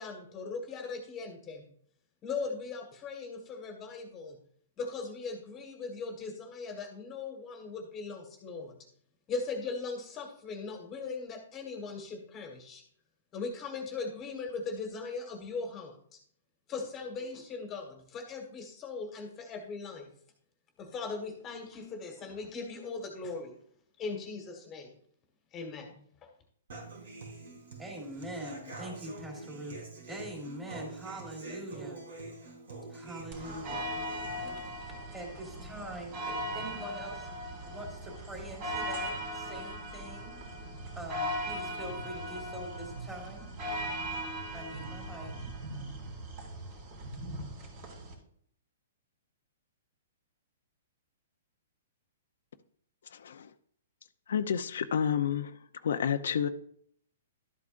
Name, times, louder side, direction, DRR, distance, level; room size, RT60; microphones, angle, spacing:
voice 1, 0.0-1.6 2.2-4.4 4.8-8.8 9.3-12.8 13.3-16.2 16.7-20.2 20.8-23.5 24.0-25.0 25.5-26.3, left 4 dB, 20° left, 3 dB, 1.5 m, -39 dB
Human voice / Acoustic guitar, 26.7-34.7, right 3 dB, 85° right, 3.6 m, -46 dB
voice 2, 27.8-29.8 30.1-32.0 32.9-33.9 35.1-37.3 37.6-40.4 40.9-43.5 44.5-45.3, right 1 dB, 15° right, 0 dB, 3.2 m, -43 dB
sound 1, 33.3-48.1, equal, 40° right, 3.2 m, -39 dB
voice 3, 53.1-53.5 54.3-55.6 55.8-56.5, left 8 dB, 75° left, 9 dB, 0.6 m, -30 dB
12.5 x 8.3 x 2.5 m, 0.63 s
hypercardioid pair, 150°, 0 cm